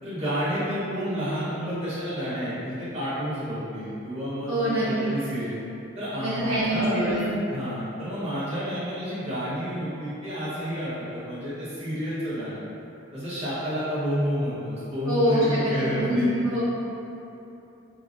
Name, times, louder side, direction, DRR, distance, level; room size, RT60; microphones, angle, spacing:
voice 1, 0.0-5.5 5.9-12.6 13.1-16.3, equal, 30° right, -13 dB, 1.1 m, -30 dB
voice 2, 4.5-4.8 6.2-7.2 15.1-16.6, equal, 90° right, -10 dB, 0.9 m, -24 dB
3.9 x 2.8 x 2.5 m, 2.9 s
head